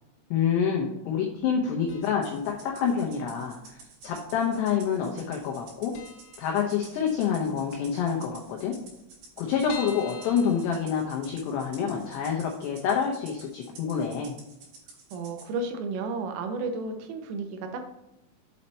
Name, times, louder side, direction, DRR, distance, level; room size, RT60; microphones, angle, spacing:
voice 1, 0.3-6.0 6.4-8.7 9.4-14.3, left 7 dB, 90° left, 0 dB, 2.4 m, -27 dB
sound 1, 1.9-2.4 2.7-2.8 3.7-4.4 4.7-4.9 5.1-5.2 5.6-5.7 5.9-7.3 7.6-7.7 8.0-8.1 8.3-8.4 8.9-11.5 12.0-12.1 12.4-12.5, left 4 dB, 70° left, 2.7 m, -46 dB
Rattle (instrument), 2.0-15.5, right 4 dB, 60° right, 3.7 m, -51 dB
voice 2, 15.1-17.8, right 3 dB, 80° right, 5 dB, 3.4 m, -32 dB
8.1 x 4.3 x 4.1 m, 0.91 s
omnidirectional pair, 6.0 m